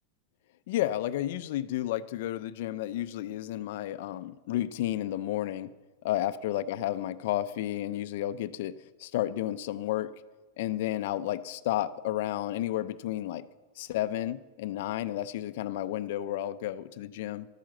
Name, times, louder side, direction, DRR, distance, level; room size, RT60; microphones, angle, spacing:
voice 1, 0.7-5.7 6.0-10.1 10.6-13.4 13.8-17.5, left 13 dB, 65° left, 14 dB, 0.5 m, -32 dB
12.0 x 10.5 x 7.6 m, 1.3 s
supercardioid pair, 140°, 0 cm